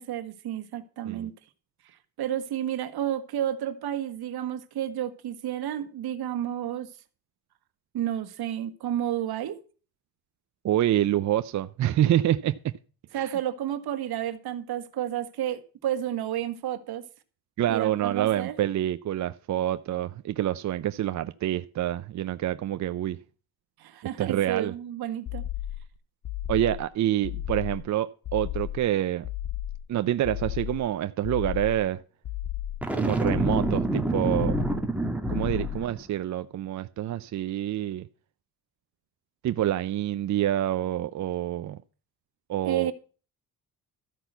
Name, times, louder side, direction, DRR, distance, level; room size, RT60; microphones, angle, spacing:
voice 1, 0.0-1.3 1.8-6.9 7.9-9.6 13.1-17.0 17.7-18.6 23.8-25.4 42.6-42.9, right 11 dB, 75° right, 1.6 m, -31 dB
voice 2, 10.6-12.5 13.1-13.3 17.6-23.2 24.2-24.7 26.5-29.2 29.9-32.0 33.0-34.6 35.3-38.1 39.4-41.8 42.5-42.9, right 12 dB, 50° right, 0.5 m, -27 dB
sound 1, 25.3-25.9 26.2-26.9 27.2-27.9 28.2-28.9 29.2-29.9 30.2-30.9 31.2-31.9 32.2-32.9 33.2-33.9 34.2-34.9 35.2-35.9, left 13 dB, 50° left, 1.1 m, -34 dB
Boom, 32.8-36.0, right 2 dB, 5° right, 1.8 m, -27 dB
13.5 x 5.8 x 8.0 m
cardioid pair, 115°, 39 cm